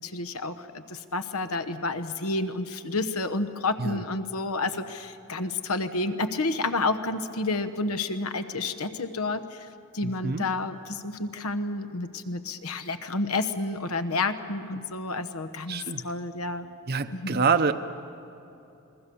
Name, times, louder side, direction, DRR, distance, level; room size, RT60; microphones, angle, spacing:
voice 1, 0.0-9.7 9.9-16.7 17.1-17.4, left 3 dB, 90° left, 10 dB, 1.1 m, -30 dB
voice 2, 10.0-10.4 15.7-16.0 16.9-17.7, right 5 dB, 45° right, 10 dB, 0.7 m, -26 dB
28.0 x 22.0 x 7.0 m, 2.9 s
head